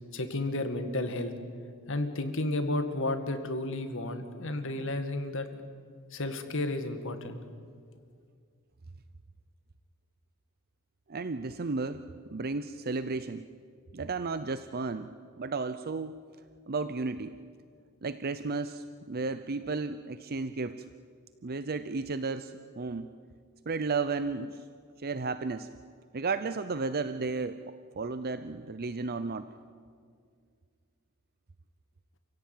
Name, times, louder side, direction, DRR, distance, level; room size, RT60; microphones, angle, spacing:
voice 1, 0.1-1.3 1.9-5.6 6.1-7.4, left 2 dB, 65° left, 8 dB, 2.1 m, -32 dB
voice 2, 11.1-12.0 12.3-13.4 13.9-15.1 15.4-16.1 16.7-17.3 18.0-20.8 21.4-23.1 23.7-24.6 25.0-25.7 26.1-27.6 28.0-29.5, right 4 dB, 45° right, 11 dB, 0.7 m, -33 dB
29.0 x 16.0 x 9.2 m, 2.1 s
head